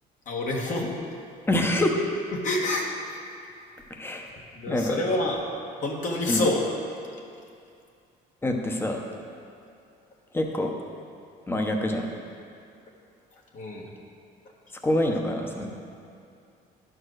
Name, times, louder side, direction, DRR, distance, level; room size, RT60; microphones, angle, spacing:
voice 1, 0.2-0.9 2.3-2.9 4.3-5.4 5.8-6.6 13.5-13.9, left 2 dB, 50° left, -1 dB, 1.6 m, -27 dB
voice 2, 1.5-2.0 3.9-4.3 4.7-5.0 6.3-6.4 8.4-9.0 10.3-10.7 11.5-12.1 14.8-15.7, left 1 dB, 15° left, 2 dB, 1.0 m, -26 dB
11.0 x 4.8 x 6.3 m, 2.5 s
cardioid pair, 110°, 17 cm